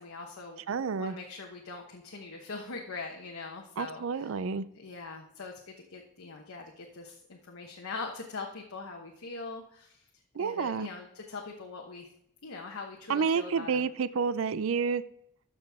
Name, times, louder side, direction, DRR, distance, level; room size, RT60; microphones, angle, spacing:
voice 1, 0.0-0.6 1.0-4.3 4.7-10.0 10.4-12.1 12.4-13.9, left 4 dB, 90° left, 0 dB, 1.1 m, -42 dB
voice 2, 0.7-1.2 3.8-4.7 10.3-10.9 13.1-15.0, right 5 dB, 75° right, 15 dB, 0.4 m, -29 dB
13.0 x 6.1 x 3.5 m, 0.73 s
head